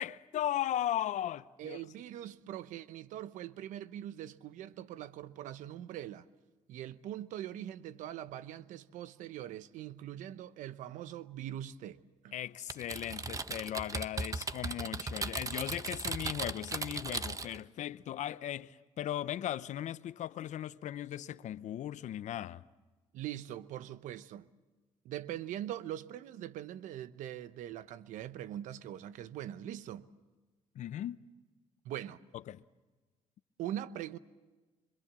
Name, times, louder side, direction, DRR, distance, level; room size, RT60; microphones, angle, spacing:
voice 1, 0.0-1.8 12.3-22.6 30.7-31.2 32.5-32.6, left 11 dB, 70° left, 0.8 m, -37 dB
voice 2, 1.6-6.3 6.7-12.3 23.1-24.5 25.0-30.1 31.8-32.2 33.6-34.2, right 12 dB, 85° right, 0.9 m, -42 dB
Typing, 12.7-17.6, right 3 dB, 25° right, 1.0 m, -37 dB
26.0 x 24.5 x 7.5 m
cardioid pair, 80°, 13 cm